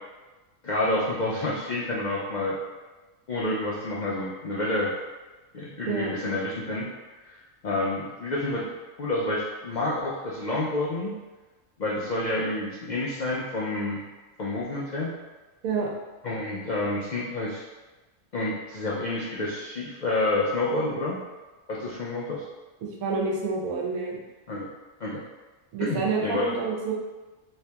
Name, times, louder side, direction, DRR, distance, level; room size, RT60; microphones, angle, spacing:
voice 1, 0.6-2.6 3.3-4.9 5.5-6.9 7.2-7.4 7.6-8.6 9.0-11.1 11.8-14.0 14.4-15.1 16.2-17.6 18.3-21.2 21.7-22.4 24.5-24.7 25.0-25.2 25.8-26.5, left 2 dB, 75° left, -5 dB, 0.4 m, -28 dB
voice 2, 23.0-24.2 25.7-26.9, right 4 dB, 85° right, -1 dB, 1.2 m, -28 dB
3.2 x 2.8 x 3.3 m, 1.2 s
omnidirectional pair, 1.5 m